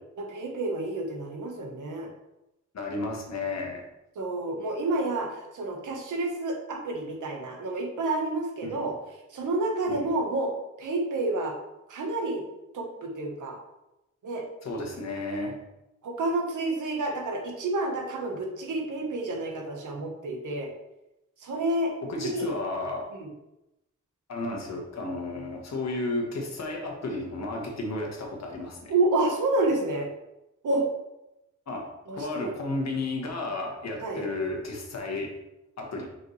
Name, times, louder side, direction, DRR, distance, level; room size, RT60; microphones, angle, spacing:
voice 1, 0.2-2.1 4.2-9.0 9.3-10.5 10.8-11.5 11.9-12.4 12.7-13.6 14.2-14.4 16.0-20.7 21.4-21.9 22.2-22.5 23.1-23.3 28.9-30.1 30.6-30.8 32.1-32.6 34.0-34.2, right 2 dB, 85° right, 1 dB, 1.3 m, -29 dB
voice 2, 2.7-3.8 8.6-8.8 9.9-10.1 14.6-15.6 22.0-23.1 24.3-28.9 31.7-31.9 32.2-35.3 35.8-36.1, left 2 dB, 60° left, 1 dB, 1.5 m, -32 dB
5.7 x 5.3 x 3.3 m, 0.92 s
wide cardioid pair, 125°, 30 cm